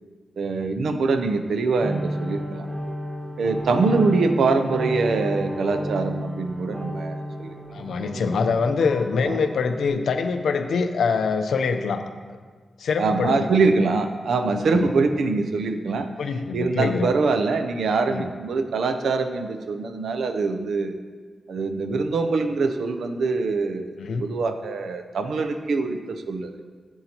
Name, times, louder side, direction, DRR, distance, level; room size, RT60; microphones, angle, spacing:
voice 1, 0.4-2.7 3.4-7.5 9.2-9.4 13.0-16.1 16.5-21.0 21.5-26.6, right 4 dB, 80° right, 7 dB, 0.6 m, -24 dB
sound 1, 1.8-9.9, equal, 10° right, 1.1 m, -32 dB
voice 2, 7.7-12.0 12.8-13.5 14.5-14.9 16.2-17.1 18.1-18.3 24.0-24.3, left 5 dB, 90° left, 7 dB, 0.6 m, -24 dB
12.0 x 8.0 x 2.9 m, 1.5 s
wide cardioid pair, 130°, 0 cm